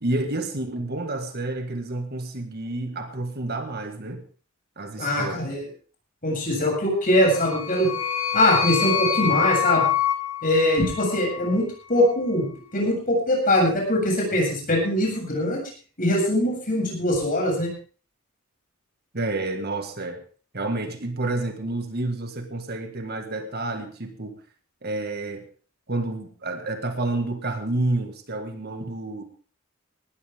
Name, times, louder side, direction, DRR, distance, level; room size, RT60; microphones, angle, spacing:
voice 1, 0.0-4.2 4.8-5.4 19.1-20.2 20.5-24.3 24.8-25.4 25.9-29.2, right 2 dB, 50° right, 6 dB, 1.8 m, -29 dB
voice 2, 5.0-5.6 6.2-7.9 8.3-9.8 10.4-12.5 12.7-15.6 16.0-17.7, left 1 dB, 40° left, 0 dB, 7.6 m, -22 dB
sound 1, 7.2-11.5, left 9 dB, 80° left, 1.8 m, -26 dB
19.0 x 13.5 x 3.6 m, 0.39 s
head